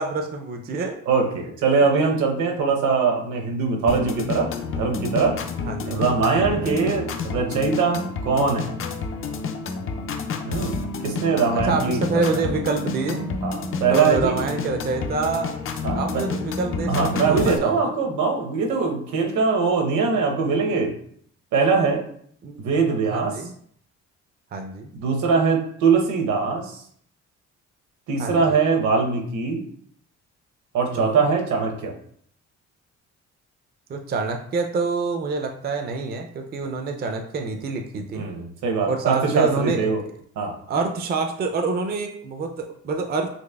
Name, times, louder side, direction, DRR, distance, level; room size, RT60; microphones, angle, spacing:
voice 1, 0.0-1.0 5.6-6.0 6.3-6.8 11.5-13.3 13.9-15.5 15.9-18.0 22.4-22.6 23.1-23.5 24.5-24.9 28.2-28.6 30.9-31.2 33.9-38.3 38.9-39.9 40.7-43.3, right 4 dB, 35° right, 4 dB, 0.4 m, -27 dB
voice 2, 1.1-5.3 5.9-8.8 10.4-10.8 11.0-12.2 13.4-14.4 15.8-16.2 16.9-20.9 21.5-22.0 22.6-23.3 25.0-26.8 28.1-29.6 30.7-31.9 38.1-40.0 40.4-40.6, right 4 dB, 70° right, 2 dB, 0.8 m, -22 dB
sound 1, 3.9-17.6, left 4 dB, 45° left, 0.4 m, -29 dB
4.0 x 2.9 x 2.3 m, 0.63 s
cardioid pair, 90°, 30 cm